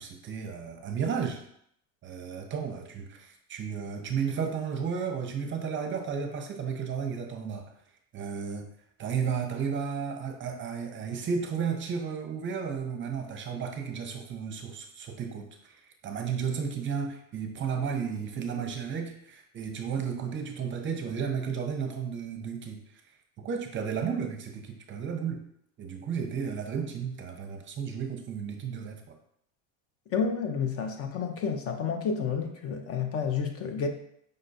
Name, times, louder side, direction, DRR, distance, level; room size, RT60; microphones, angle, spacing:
voice 1, 0.0-1.4 2.0-7.7 8.1-8.7 9.0-25.4 25.8-29.2, right 6 dB, 30° right, 4 dB, 0.7 m, -33 dB
voice 2, 30.1-33.9, left 6 dB, 40° left, 5 dB, 0.6 m, -30 dB
5.2 x 2.2 x 4.1 m, 0.70 s
supercardioid pair, 100°, 38 cm